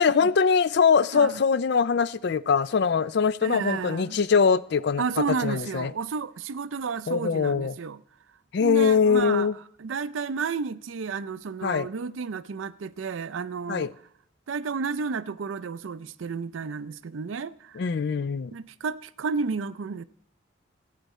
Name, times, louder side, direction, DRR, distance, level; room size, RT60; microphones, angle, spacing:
voice 1, 0.0-5.0 5.4-5.9 7.1-7.7 8.5-9.5 11.6-11.9 13.7-13.9 17.8-18.5, left 6 dB, 60° left, 0.4 m, -22 dB
voice 2, 3.4-4.2 5.0-8.0 8.6-9.5 9.8-13.9 14.5-17.8 18.5-20.0, right 5 dB, 85° right, 0.5 m, -32 dB
15.5 x 9.1 x 4.2 m
head